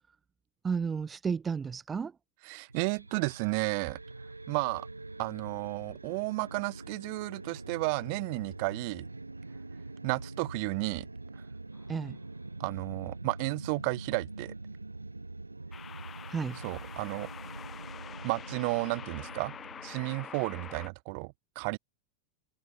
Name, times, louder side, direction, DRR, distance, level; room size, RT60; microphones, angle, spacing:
voice 1, 0.6-2.1 11.9-12.2 16.3-16.6, right 6 dB, 15° right, 0.3 m, -32 dB
voice 2, 2.4-4.0 4.5-4.9 5.2-9.1 10.0-11.1 12.6-14.5 16.6-17.3 18.2-19.5 19.8-21.8, right 35 dB, 45° right, 1.4 m, -33 dB
sound 1, 2.7-20.1, right 2 dB, 80° right, 0.9 m, -44 dB
sound 2, 11.7-12.1 15.7-20.9, left 7 dB, 20° left, 2.7 m, -46 dB
figure-of-eight pair, 90°, 0 cm